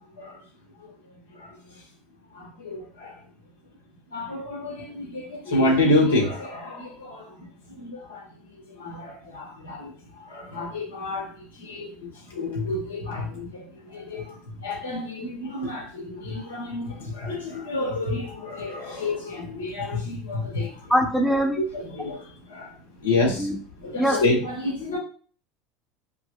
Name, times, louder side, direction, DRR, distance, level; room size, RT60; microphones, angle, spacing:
voice 1, 0.8-1.8 2.3-3.2 4.1-20.9 21.5-23.5 23.8-25.0, left 2 dB, 85° left, 0 dB, 1.2 m, -29 dB
voice 2, 20.9-21.6 23.3-23.5 23.8-24.2, equal, 5° left, 1 dB, 0.8 m, -22 dB
5.4 x 2.1 x 2.2 m, 0.42 s
hypercardioid pair, 80°, 0 cm